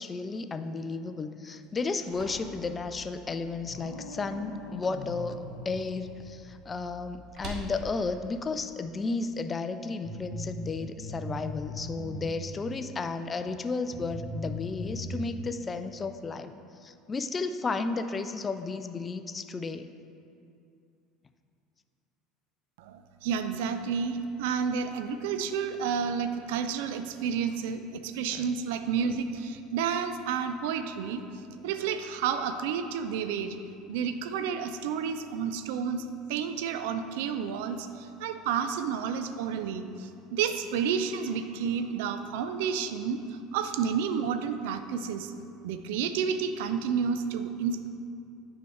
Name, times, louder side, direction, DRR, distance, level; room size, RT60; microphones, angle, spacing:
voice 1, 0.0-16.5 16.8-19.9 28.4-28.5, left 4 dB, 25° left, 10 dB, 0.3 m, -33 dB
sound 1, 1.6-9.6, right 1 dB, 45° right, 1.0 m, -47 dB
sound 2, 3.6-6.8, left 2 dB, 90° left, 0.8 m, -43 dB
sound 3, 10.0-12.7 13.4-13.5 13.9-15.2, equal, 20° right, 1.2 m, -37 dB
voice 2, 22.8-31.2 31.5-33.6 33.9-45.3 45.6-47.9, right 7 dB, 60° right, 9 dB, 0.3 m, -30 dB
9.0 x 4.8 x 3.2 m, 2.5 s
figure-of-eight pair, 65°, 0 cm